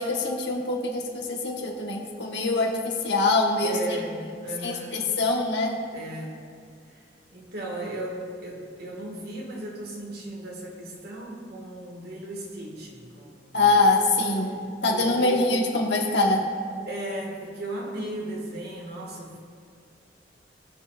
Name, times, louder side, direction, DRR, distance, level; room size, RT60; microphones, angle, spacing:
voice 1, 0.0-3.8 4.6-5.8 13.5-14.6 14.8-16.5, left 2 dB, 70° left, 0 dB, 1.5 m, -24 dB
voice 2, 3.6-5.0 5.9-6.5 6.9-7.0 7.3-13.7 14.5-14.6 14.9-15.5 16.9-19.4, right 1 dB, 60° right, -2 dB, 2.0 m, -36 dB
20.0 x 7.0 x 2.6 m, 2.3 s
head